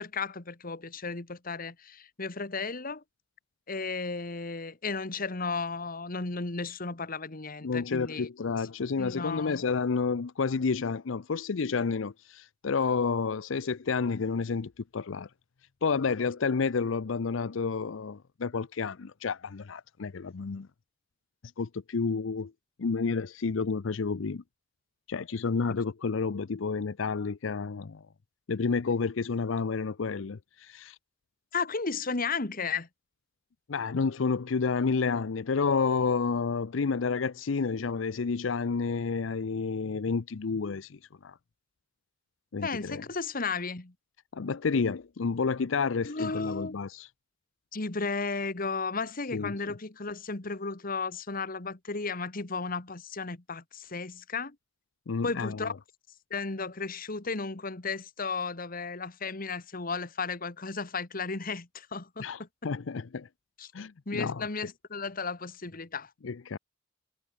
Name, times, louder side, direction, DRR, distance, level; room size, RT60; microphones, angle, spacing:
voice 1, 0.0-3.0 3.7-8.3 9.0-9.6 31.5-32.9 42.6-43.9 46.0-46.8 47.7-54.5 55.2-55.7 56.3-62.5 63.6-63.7 64.1-66.1, left 4 dB, 50° left, 1.6 m, -34 dB
voice 2, 7.6-15.3 15.8-20.7 21.6-22.5 22.8-24.4 25.1-28.0 28.5-31.0 33.7-41.4 42.5-43.0 44.3-47.1 49.3-49.7 55.1-55.7 62.2-63.3 63.7-64.5 66.2-66.6, left 5 dB, 90° left, 0.6 m, -30 dB
head